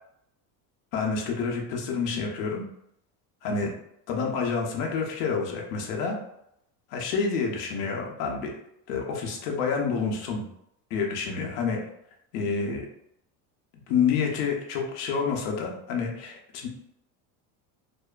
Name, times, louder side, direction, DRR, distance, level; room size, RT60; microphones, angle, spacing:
voice 1, 0.9-2.6 3.4-3.7 4.1-6.2 6.9-8.5 8.9-10.4 10.9-11.8 12.3-12.8 13.9-16.7, left 5 dB, 90° left, 0 dB, 0.7 m, -28 dB
2.6 x 2.1 x 2.3 m, 0.76 s
supercardioid pair, 105°, 45 cm